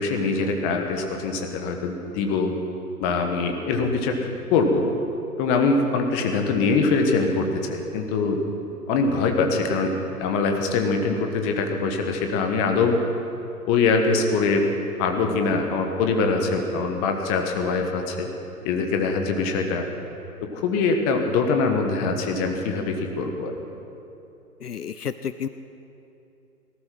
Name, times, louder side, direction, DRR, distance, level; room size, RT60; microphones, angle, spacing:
voice 1, 0.0-2.5 3.0-4.2 4.5-4.9 5.4-8.4 8.9-13.0 13.7-14.7 15.0-18.3 18.6-19.8 20.5-23.6, left 4 dB, 25° left, 4 dB, 1.4 m, -23 dB
voice 2, 24.6-25.5, left 8 dB, 75° left, 12 dB, 0.7 m, -31 dB
18.5 x 12.5 x 6.0 m, 2.8 s
figure-of-eight pair, 125°, 47 cm